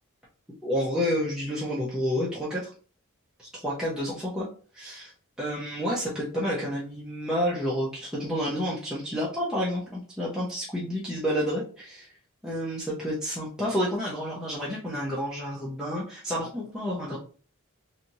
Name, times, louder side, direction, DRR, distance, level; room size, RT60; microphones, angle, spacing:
voice 1, 0.6-2.7 3.4-4.5 4.8-5.1 5.4-12.1 12.4-17.2, equal, 5° right, -7 dB, 0.8 m, -30 dB
3.3 x 2.8 x 2.7 m, 0.39 s
head